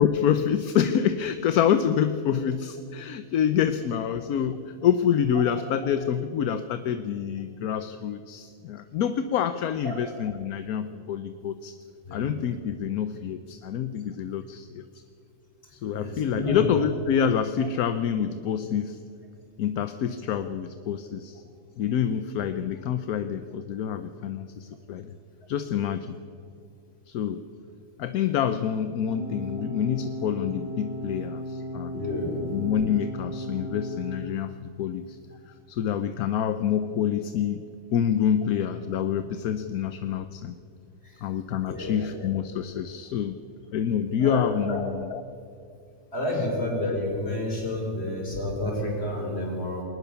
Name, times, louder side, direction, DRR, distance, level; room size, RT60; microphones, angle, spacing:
voice 1, 0.0-11.8 12.1-14.8 15.7-19.0 19.6-21.4 21.8-25.2 25.5-26.2 27.1-27.5 28.0-31.9 32.5-35.2 35.7-37.6 37.9-40.6 41.2-43.4 43.7-45.2, left 8 dB, 75° left, 10 dB, 1.2 m, -27 dB
voice 2, 12.0-12.3 15.9-16.6 31.9-32.5 41.7-42.0 44.2-44.8 46.1-49.8, left 1 dB, 40° left, -1 dB, 5.8 m, -30 dB
sound 1, 29.1-34.1, left 1 dB, 20° left, 5.2 m, -36 dB
21.0 x 19.0 x 7.0 m, 2.4 s
omnidirectional pair, 1.6 m